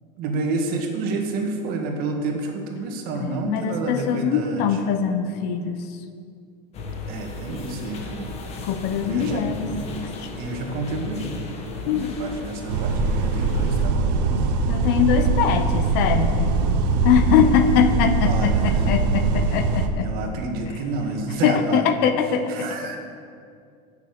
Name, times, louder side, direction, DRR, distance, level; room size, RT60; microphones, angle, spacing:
voice 1, 0.2-4.7 7.1-8.6 9.1-9.4 10.4-11.3 11.9-14.5 18.3-18.7 20.0-21.8 22.5-23.0, right 3 dB, 45° right, 2 dB, 2.0 m, -29 dB
voice 2, 3.2-5.8 8.6-9.7 10.2-10.3 11.9-12.2 14.3-16.5 17.0-20.1 21.4-23.0, left 7 dB, 50° left, 8 dB, 1.0 m, -22 dB
sound 1, 6.7-13.9, left 3 dB, 30° left, 1.5 m, -35 dB
sound 2, 12.7-19.9, right 3 dB, 85° right, 1.3 m, -22 dB
13.0 x 7.1 x 8.2 m, 2.3 s
supercardioid pair, 160°, 21 cm